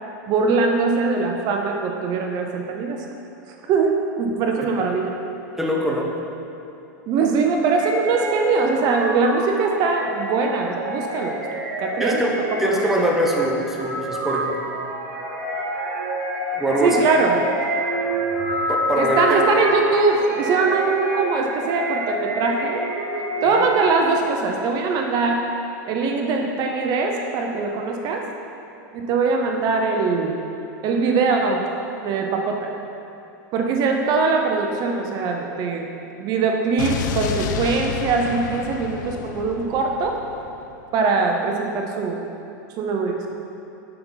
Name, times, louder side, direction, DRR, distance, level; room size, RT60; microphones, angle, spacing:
voice 1, 0.3-3.0 3.7-5.2 7.1-11.4 11.8-12.8 16.8-17.4 19.0-22.8 23.4-25.4 25.9-28.2 28.9-30.4 30.8-31.6 32.0-32.7 33.5-35.9 36.2-40.2 40.9-42.2 42.8-43.3, right 4 dB, 40° right, 2 dB, 0.6 m, -22 dB
voice 2, 5.6-6.1 12.0-12.3 12.6-14.6 16.6-17.1 18.7-19.4 23.5-23.6, right 1 dB, 5° right, -2 dB, 0.7 m, -22 dB
sound 1, 7.7-24.0, right 1 dB, 80° right, 1.1 m, -28 dB
Explosion, 36.8-40.8, left 8 dB, 75° left, 0.4 m, -30 dB
6.7 x 5.5 x 3.9 m, 2.8 s
supercardioid pair, 130°, 10 cm